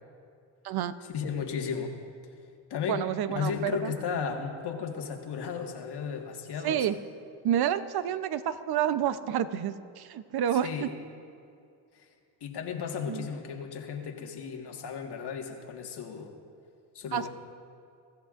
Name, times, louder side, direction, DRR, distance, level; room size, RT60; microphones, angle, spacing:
voice 1, 1.1-2.0 2.7-6.9 10.6-10.9 11.9-12.1 12.4-16.3 17.0-17.3, left 6 dB, 55° left, 2 dB, 1.8 m, -34 dB
voice 2, 2.9-3.9 6.6-7.0 7.4-10.9 13.1-13.3 17.1-17.3, right 10 dB, 50° right, 13 dB, 0.8 m, -29 dB
24.5 x 14.0 x 2.6 m, 2.4 s
supercardioid pair, 85°, 47 cm